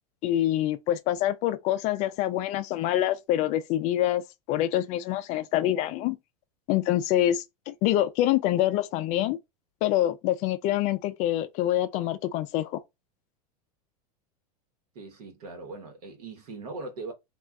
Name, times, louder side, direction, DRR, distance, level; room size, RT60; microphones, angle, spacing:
voice 1, 0.2-6.2 6.7-9.4 9.8-12.8, left 13 dB, 35° left, 0.4 m, -26 dB
voice 2, 14.9-17.1, right 3 dB, 80° right, 1.1 m, -40 dB
2.4 x 2.2 x 3.6 m
supercardioid pair, 130°, 20 cm